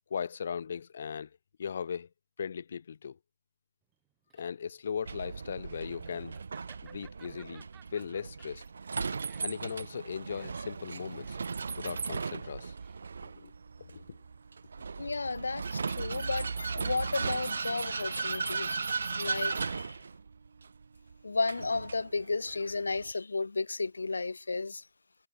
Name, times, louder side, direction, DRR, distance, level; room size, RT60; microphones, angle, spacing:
voice 1, 0.1-1.3 1.6-2.1 2.4-3.2 4.3-6.4 6.8-8.6 9.4-11.4 11.8-12.7 13.2-13.5 13.9-14.2, left 7 dB, 50° left, 1.2 m, -38 dB
Laughter, 3.9-13.3, right 15 dB, 15° right, 2.0 m, -61 dB
Vehicle, 5.1-23.1, right 5 dB, 65° right, 0.4 m, -37 dB
voice 2, 15.0-20.0 21.2-24.8, left 3 dB, 75° left, 0.5 m, -33 dB
figure-of-eight pair, 150°, 0 cm